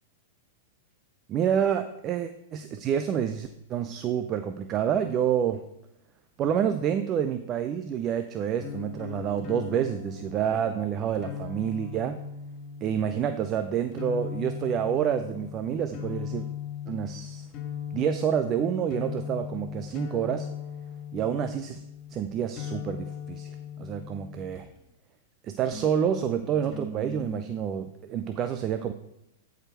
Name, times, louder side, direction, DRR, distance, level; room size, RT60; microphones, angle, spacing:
voice 1, 1.3-5.6 6.4-12.2 12.8-16.5 16.9-17.5 17.9-20.5 21.1-21.8 22.1-24.7 25.4-28.9, right 8 dB, 35° right, 9 dB, 0.6 m, -28 dB
sound 1, 8.6-24.9 25.7-27.6, left 7 dB, 40° left, 2.4 m, -39 dB
13.5 x 5.0 x 4.5 m, 0.81 s
hypercardioid pair, 110°, 0 cm